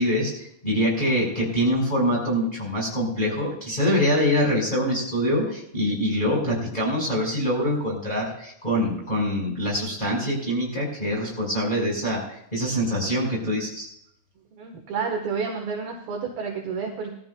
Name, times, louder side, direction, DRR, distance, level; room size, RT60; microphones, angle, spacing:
voice 1, 0.0-12.2 12.5-13.9, equal, 10° left, -5 dB, 4.7 m, -24 dB
voice 2, 14.6-17.1, right 5 dB, 65° right, 1 dB, 2.4 m, -30 dB
21.0 x 14.0 x 2.3 m, 0.74 s
omnidirectional pair, 5.8 m